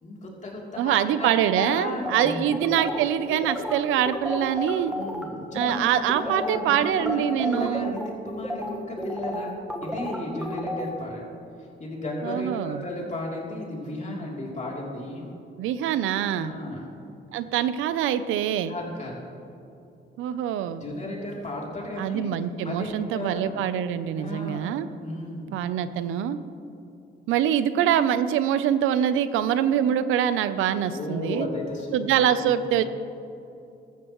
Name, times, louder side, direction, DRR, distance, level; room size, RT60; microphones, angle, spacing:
voice 1, 0.0-2.5 4.9-9.5 9.8-11.3 11.8-15.3 16.3-16.9 18.7-19.2 20.8-22.3 22.6-23.6 24.2-24.7 25.0-25.5 30.9-32.0 32.3-32.8, left 1 dB, 35° left, -3 dB, 3.1 m, -34 dB
voice 2, 0.8-4.9 5.5-7.9 12.2-12.8 15.6-16.5 17.3-18.8 20.2-20.8 22.0-24.9 25.5-26.4 27.3-31.5 31.9-32.8, right 10 dB, 90° right, 13 dB, 0.6 m, -24 dB
sound 1, 2.0-5.2 5.6-5.8 6.1-10.9, left 1 dB, 5° right, 1.4 m, -32 dB
14.0 x 13.5 x 3.1 m, 2.7 s
cardioid pair, 90°, 20 cm